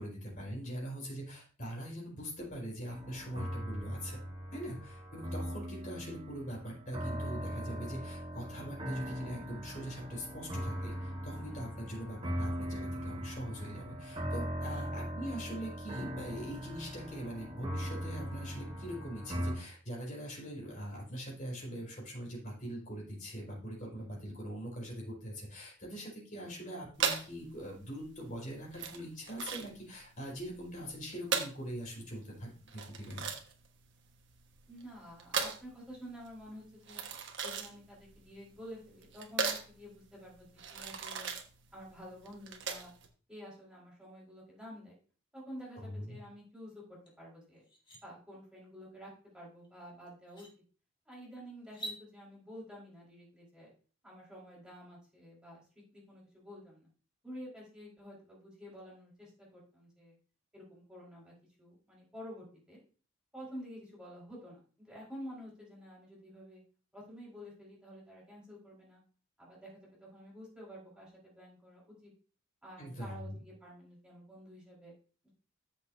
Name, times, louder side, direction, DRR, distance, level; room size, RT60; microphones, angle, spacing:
voice 1, 0.0-4.2 4.5-33.3 45.7-46.2 72.8-73.4, equal, 40° left, -3 dB, 4.6 m, -42 dB
Piano sound, 2.9-19.6, equal, 25° right, 2.4 m, -40 dB
voice 2, 23.9-24.3 34.7-37.0 37.4-41.3 41.7-42.9 43.3-44.9 45.3-47.6 48.0-50.5 51.1-53.7 54.0-55.6 55.9-56.9 57.2-60.1 60.5-62.8 63.3-66.6 66.9-69.0 69.4-72.1 72.6-74.9 75.2-75.3, equal, 5° right, -5 dB, 4.5 m, -50 dB
sound 1, 26.9-43.1, right 5 dB, 60° right, 1.4 m, -38 dB
sound 2, 47.1-47.2 47.6-48.0 49.6-49.7 50.2-50.5 51.6-52.0, right 1 dB, 25° left, 2.5 m, -44 dB
13.5 x 6.8 x 2.7 m, 0.40 s
head